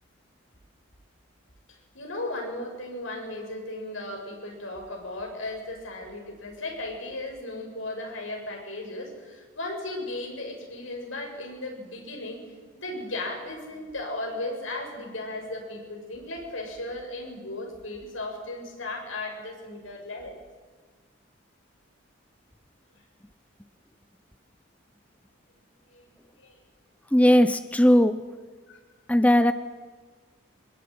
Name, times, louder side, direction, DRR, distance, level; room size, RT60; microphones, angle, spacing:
voice 1, 1.7-12.4 12.8-20.4 25.9-26.6 28.7-28.8, left 2 dB, 80° left, 2 dB, 7.1 m, -36 dB
voice 2, 27.1-28.2 29.1-29.5, equal, 5° left, 11 dB, 0.7 m, -18 dB
24.5 x 21.5 x 9.6 m, 1.5 s
head